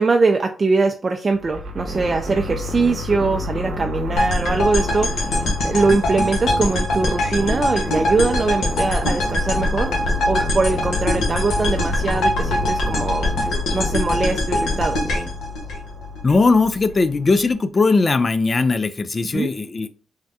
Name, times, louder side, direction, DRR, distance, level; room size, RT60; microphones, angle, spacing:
voice 1, 0.0-15.0 19.3-19.5, right 3 dB, 40° right, 4 dB, 0.3 m, -22 dB
sound 1, 1.3-17.5, left 3 dB, 80° right, 0.7 m, -30 dB
sound 2, 1.9-15.3, equal, 10° right, 0.8 m, -33 dB
sound 3, 4.2-16.3, left 1 dB, 80° left, 0.8 m, -23 dB
voice 2, 16.2-19.9, left 3 dB, 40° left, 12 dB, 0.3 m, -19 dB
3.5 x 2.1 x 2.7 m, 0.37 s
supercardioid pair, 55°, 0 cm